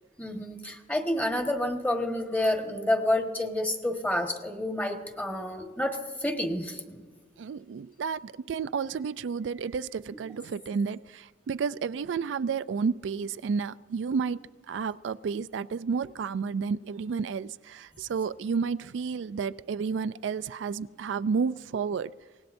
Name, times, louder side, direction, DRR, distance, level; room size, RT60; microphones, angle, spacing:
voice 1, 0.2-7.0, left 1 dB, 10° left, 1.4 m, -29 dB
voice 2, 7.4-14.4 14.7-22.1, right 5 dB, 80° right, 0.4 m, -31 dB
24.0 x 19.0 x 2.6 m
head